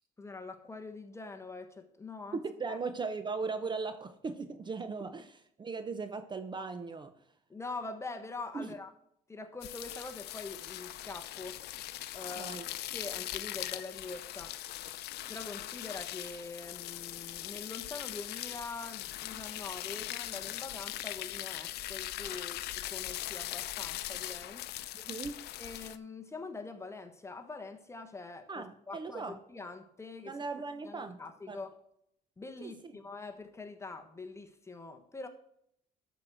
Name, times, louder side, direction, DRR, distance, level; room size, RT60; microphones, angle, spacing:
voice 1, 0.2-2.4 2.7-2.8 7.5-8.9 9.3-11.6 12.1-12.6 12.9-14.6 15.3-24.6 25.6-30.4 30.8-31.7 32.4-35.3, left 3 dB, 15° left, 5 dB, 1.2 m, -44 dB
voice 2, 2.4-7.1 8.5-8.8 12.4-12.6 25.0-25.4 28.5-29.4 30.3-31.2 31.5-31.6 32.6-32.9, right 4 dB, 25° right, 9 dB, 0.7 m, -38 dB
sound 1, 9.6-26.0, left 14 dB, 75° left, 0.6 m, -40 dB
12.5 x 4.6 x 6.2 m, 0.72 s
cardioid pair, 110°, 17 cm